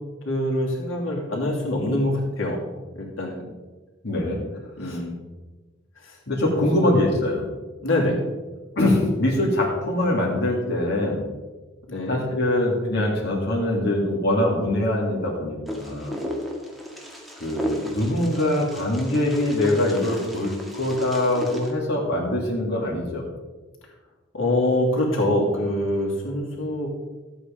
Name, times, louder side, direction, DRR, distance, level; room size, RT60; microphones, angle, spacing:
voice 1, 0.2-2.6 2.9-3.5 4.8-5.1 6.0-6.2 6.5-6.9 7.8-8.2 11.9-12.2 24.3-26.9, left 1 dB, 85° left, -2 dB, 2.7 m, -24 dB
voice 2, 4.0-4.4 4.9-5.0 6.3-7.4 8.8-11.2 12.1-16.2 17.4-23.2, left 1 dB, 55° left, -3 dB, 2.5 m, -23 dB
Wind, 15.7-21.7, equal, ahead, 1.7 m, -34 dB
13.0 x 8.2 x 5.1 m, 1.3 s
head